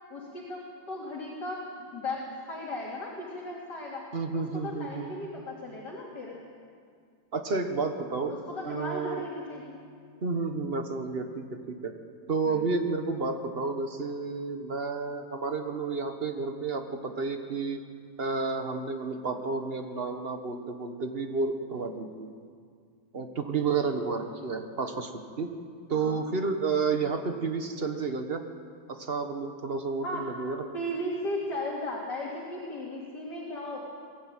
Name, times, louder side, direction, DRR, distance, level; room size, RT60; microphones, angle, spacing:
voice 1, 0.1-0.6 0.9-4.0 4.3-6.4 8.5-9.8 12.5-12.6 25.9-26.2 30.0-30.3 30.7-33.9, left 1 dB, 70° left, -5 dB, 3.5 m, -36 dB
voice 2, 4.1-5.1 7.3-8.3 8.6-9.2 10.2-11.9 12.3-17.8 18.2-22.3 23.1-25.5 25.9-28.4 28.9-30.6, right 4 dB, 35° right, 6 dB, 1.4 m, -31 dB
22.5 x 14.0 x 9.1 m, 2.2 s
omnidirectional pair, 1.9 m